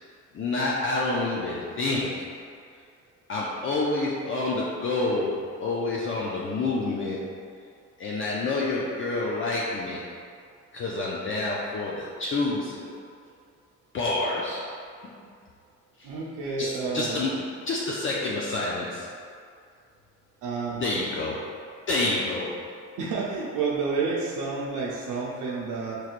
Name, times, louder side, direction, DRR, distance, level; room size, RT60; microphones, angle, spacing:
voice 1, 0.3-2.3 3.3-7.4 8.0-10.0 10.7-12.9 13.9-15.1 16.0-16.1 16.6-17.3 17.7-19.1 20.8-21.4 21.9-22.7, left 2 dB, 40° left, -5 dB, 0.5 m, -28 dB
voice 2, 16.0-17.2 20.4-20.8 23.0-26.0, right 4 dB, 85° right, -5 dB, 0.6 m, -30 dB
4.4 x 3.1 x 2.4 m, 2.2 s
cardioid pair, 90°, 30 cm